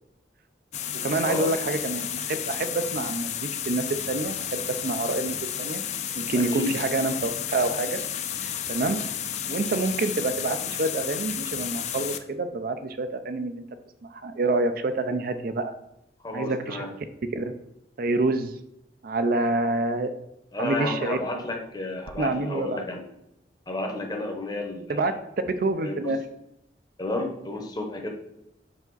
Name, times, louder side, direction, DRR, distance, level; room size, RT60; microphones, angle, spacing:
sound 1, 0.7-12.2, left 9 dB, 40° left, 0.4 m, -32 dB
voice 1, 1.0-5.8 6.1-8.0 8.4-9.0 9.5-13.6 14.0-15.7 16.3-16.8 17.3-17.5 18.0-18.5 19.0-20.1 20.6-21.2 22.2-22.9 24.9-25.1 25.5-26.2, right 2 dB, 55° right, 9 dB, 0.4 m, -27 dB
voice 2, 6.3-6.8 16.2-16.9 20.5-23.0 23.7-25.0 25.8-26.2 27.0-28.1, left 2 dB, 20° left, 3 dB, 0.8 m, -31 dB
5.3 x 4.8 x 3.9 m, 0.81 s
head